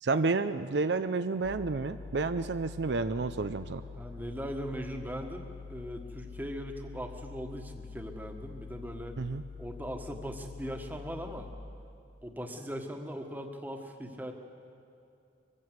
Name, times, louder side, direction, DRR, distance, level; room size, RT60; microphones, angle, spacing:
voice 1, 0.0-3.8 9.2-9.4, right 3 dB, 65° right, 10 dB, 0.5 m, -30 dB
sound 1, 1.4-11.5, left 5 dB, 65° left, 1.6 m, -46 dB
voice 2, 3.9-9.2 9.6-11.5 12.2-14.3, equal, 10° right, 4 dB, 1.5 m, -39 dB
23.5 x 15.0 x 8.0 m, 2.6 s
head